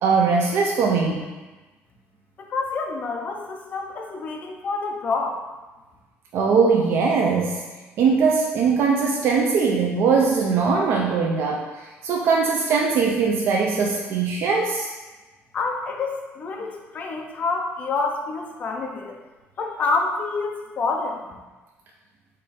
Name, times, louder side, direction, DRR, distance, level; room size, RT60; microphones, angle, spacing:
voice 1, 0.0-1.3 6.3-7.6 8.0-14.9, right 5 dB, 55° right, 0 dB, 0.4 m, -21 dB
voice 2, 2.4-5.4 15.5-19.2 19.6-21.3, left 3 dB, 30° left, 1 dB, 0.5 m, -27 dB
5.0 x 2.6 x 4.0 m, 1.2 s
cardioid pair, 180°, 5 cm